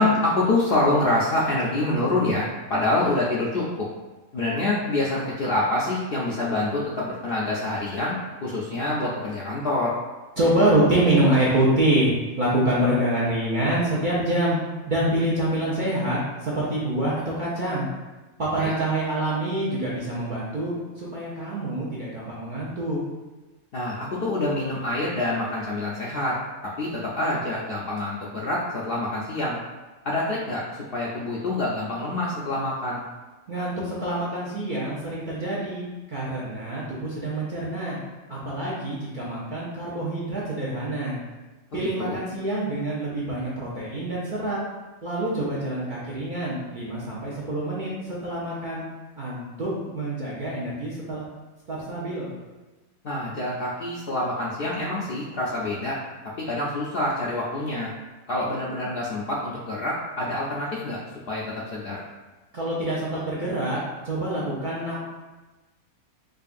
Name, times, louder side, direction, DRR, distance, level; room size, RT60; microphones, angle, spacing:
voice 1, 0.0-3.9 4.3-9.9 18.6-18.8 23.7-26.4 26.8-29.6 30.0-30.6 30.9-33.0 41.7-42.2 53.0-56.0 56.4-57.9 58.3-61.0 61.3-62.0, left 2 dB, 75° left, -6 dB, 0.5 m, -26 dB
voice 2, 10.4-14.6 14.9-17.9 18.4-23.0 33.5-38.0 38.3-41.1 41.7-44.6 45.0-48.8 49.2-51.2 51.7-52.3 62.5-63.8 64.0-65.0, right 1 dB, 50° right, -8 dB, 0.6 m, -26 dB
5.1 x 2.3 x 2.5 m, 1.2 s
omnidirectional pair, 1.5 m